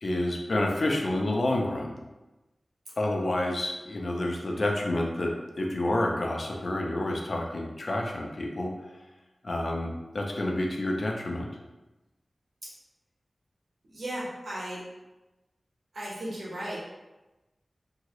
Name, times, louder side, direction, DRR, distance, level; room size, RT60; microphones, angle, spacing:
voice 1, 0.0-2.0 3.0-8.7 9.4-11.5, left 1 dB, 55° left, 0 dB, 0.5 m, -29 dB
voice 2, 13.9-14.8 15.9-16.8, right 1 dB, 90° right, -7 dB, 1.2 m, -35 dB
2.8 x 2.8 x 3.0 m, 1.1 s
wide cardioid pair, 70°, 0 cm